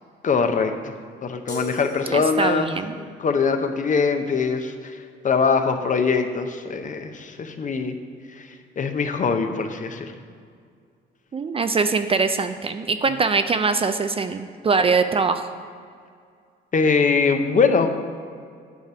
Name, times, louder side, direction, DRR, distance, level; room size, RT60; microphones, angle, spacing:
voice 1, 0.2-0.9 1.2-2.7 3.0-5.0 5.2-8.0 8.4-8.5 8.8-10.2 16.7-17.9, left 5 dB, 40° left, 7 dB, 0.7 m, -22 dB
sound 1, 1.5-2.8, right 1 dB, 20° left, 1.6 m, -37 dB
voice 2, 1.8-3.0 11.3-15.4, right 4 dB, 30° right, 9 dB, 0.3 m, -23 dB
9.3 x 3.3 x 6.8 m, 2.2 s
cardioid pair, 90°, 20 cm